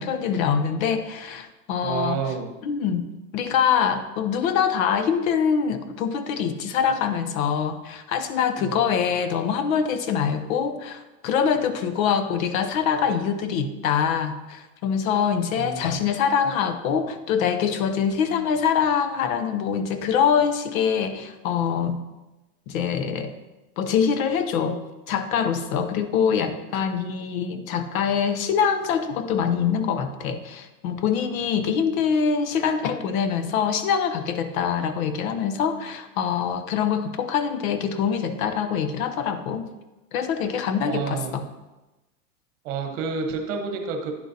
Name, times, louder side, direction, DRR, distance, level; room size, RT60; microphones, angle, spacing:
voice 1, 0.0-2.2 2.6-3.1 3.3-22.0 22.7-23.3 23.8-39.7 40.1-41.4, left 7 dB, 60° left, 10 dB, 0.8 m, -24 dB
voice 2, 1.8-2.5 8.6-8.9 15.6-16.0 40.8-41.4 42.6-44.1, right 5 dB, 55° right, 5 dB, 1.2 m, -29 dB
9.8 x 6.3 x 2.8 m, 1.1 s
supercardioid pair, 150°, 47 cm